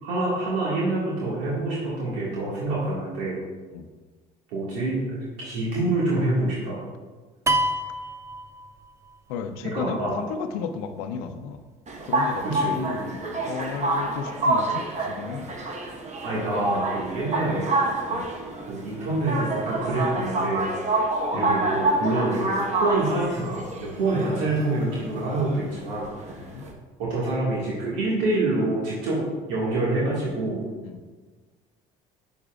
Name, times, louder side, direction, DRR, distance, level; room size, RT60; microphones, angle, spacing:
voice 1, 0.0-3.4 4.5-6.8 9.6-10.1 12.4-12.8 16.2-17.8 18.7-20.6 21.3-26.5 27.0-29.2 29.5-30.6, right 2 dB, 85° right, -7 dB, 1.9 m, -26 dB
sound 1, 7.5-9.2, right 1 dB, 15° right, 0.5 m, -26 dB
voice 2, 9.3-11.6 12.0-12.5 12.7-15.6 18.1-18.3 21.3-21.5 26.4-26.6 30.8-31.0, left 6 dB, 80° left, 8 dB, 0.6 m, -33 dB
sound 2, 11.9-26.7, right 2 dB, 40° right, 1.1 m, -27 dB
8.6 x 6.7 x 2.4 m, 1.4 s
supercardioid pair, 80°, 18 cm